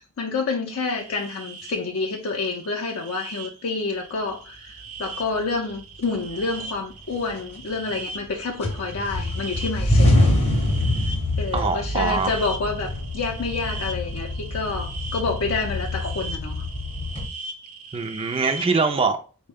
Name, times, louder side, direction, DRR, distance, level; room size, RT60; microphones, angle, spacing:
voice 1, 0.0-10.3 11.4-16.6, left 3 dB, 65° left, 0.5 m, -28 dB
sound 1, 0.8-19.0, right 3 dB, 75° right, 0.6 m, -40 dB
sound 2, 5.4-5.5 6.0-6.7 7.1-8.3 8.6-17.3, left 1 dB, 30° left, 0.7 m, -25 dB
voice 2, 11.5-12.3 17.9-19.2, right 4 dB, 25° right, 0.3 m, -23 dB
4.1 x 2.1 x 3.4 m
head